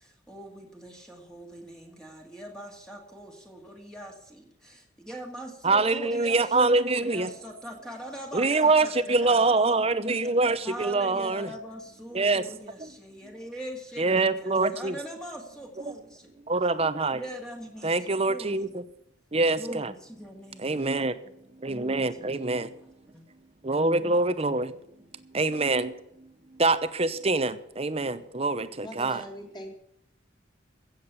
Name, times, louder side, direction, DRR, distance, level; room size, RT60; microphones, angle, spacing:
voice 1, 0.0-9.8 10.6-16.3 17.1-18.7 19.6-20.9 21.7-23.3 24.5-24.9, equal, 5° left, 1 dB, 2.0 m, -42 dB
voice 2, 5.6-7.3 8.3-11.5 12.1-12.4 12.8-12.9 14.0-14.9 15.9-16.0 16.5-17.2 17.8-18.8 19.3-19.9 20.6-21.2 21.6-22.7 23.6-24.7 25.3-26.3 26.5-29.2, right 3 dB, 30° right, 13 dB, 0.8 m, -25 dB
voice 3, 28.8-29.8, equal, 25° left, 1 dB, 3.3 m, -41 dB
16.0 x 7.6 x 8.2 m, 0.80 s
head